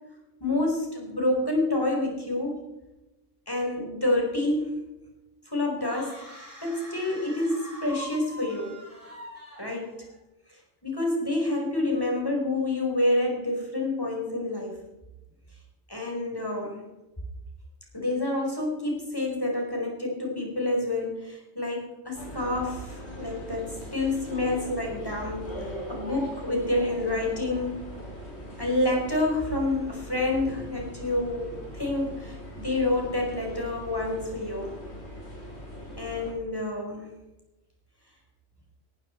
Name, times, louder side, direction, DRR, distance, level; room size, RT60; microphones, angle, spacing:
voice 1, 0.4-2.6 3.5-4.7 5.5-8.8 9.6-10.0 10.5-14.8 15.9-16.8 17.9-27.8 28.6-34.8 36.0-37.1, left 2 dB, 15° left, 0 dB, 4.7 m, -28 dB
sound 1, 5.8-10.2, equal, 45° right, 5.5 m, -44 dB
sound 2, 22.1-36.3, equal, 55° left, 4.7 m, -40 dB
18.5 x 15.0 x 4.5 m, 0.99 s
omnidirectional pair, 1.3 m